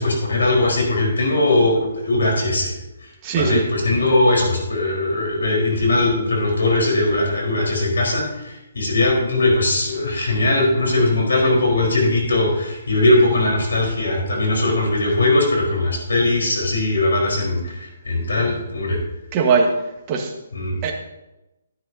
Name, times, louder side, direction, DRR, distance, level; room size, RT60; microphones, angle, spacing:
voice 1, 0.0-2.7 3.0-19.0 20.5-20.8, left 2 dB, 90° left, 0 dB, 4.3 m, -20 dB
voice 2, 3.2-3.6 19.3-19.7 20.1-20.3 20.8-20.9, right 5 dB, 25° right, 1 dB, 1.4 m, -19 dB
12.5 x 9.9 x 2.8 m, 0.97 s
hypercardioid pair, 160°, 0 cm